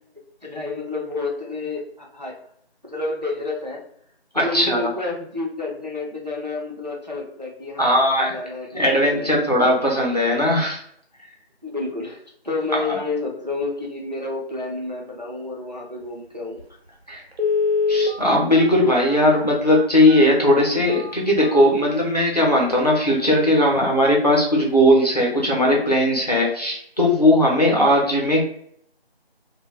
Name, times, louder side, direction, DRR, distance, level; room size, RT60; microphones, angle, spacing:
voice 1, 0.4-2.4 2.8-3.8 4.3-9.3 11.6-16.6, left 3 dB, 45° right, -1 dB, 0.4 m, -30 dB
voice 2, 4.3-4.9 7.8-8.3 8.7-10.8 12.8-13.0 17.1-17.2 17.9-28.4, left 1 dB, 40° left, -2 dB, 0.7 m, -18 dB
Telephone, 16.6-16.7 17.3-22.2 22.7-22.8 23.2-23.4 23.7-24.0 24.3-24.4, left 4 dB, 75° right, 0.8 m, -26 dB
2.2 x 2.0 x 3.3 m, 0.66 s
figure-of-eight pair, 180°, 32 cm